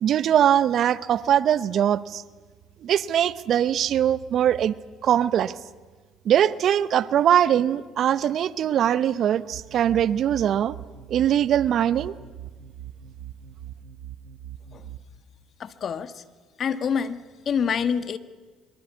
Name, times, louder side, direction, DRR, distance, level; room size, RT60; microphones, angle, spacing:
voice 1, 0.0-2.2 2.8-4.7 5.0-5.5 6.2-10.8 11.1-12.1, right 10 dB, 60° right, 17 dB, 0.9 m, -21 dB
sound 1, 9.5-15.0, right 10 dB, 85° right, 1.2 m, -42 dB
voice 2, 15.6-16.2 16.6-18.2, left 7 dB, 50° left, 12 dB, 1.4 m, -27 dB
25.0 x 23.5 x 8.4 m, 1.4 s
supercardioid pair, 65°, 0 cm